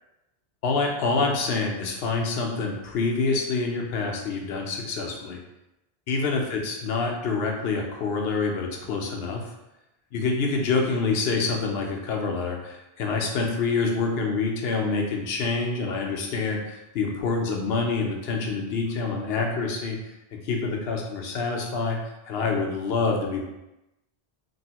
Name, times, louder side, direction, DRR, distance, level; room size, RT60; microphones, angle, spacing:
voice 1, 0.6-5.4 6.1-9.5 10.1-20.0 20.3-22.0 22.3-23.4, left 4 dB, 70° left, 1 dB, 0.8 m, -26 dB
3.0 x 2.6 x 2.8 m, 0.93 s
omnidirectional pair, 1.1 m